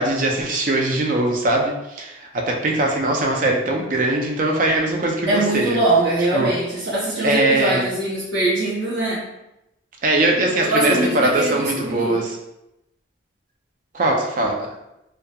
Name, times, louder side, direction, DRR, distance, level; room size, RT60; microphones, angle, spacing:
voice 1, 0.0-5.8 6.3-6.5 7.2-7.9 10.0-12.4 13.9-14.7, right 2 dB, 45° right, 1 dB, 0.4 m, -21 dB
voice 2, 5.3-9.2 10.6-12.2, right 2 dB, 70° right, -11 dB, 0.9 m, -22 dB
2.7 x 2.3 x 2.2 m, 0.90 s
head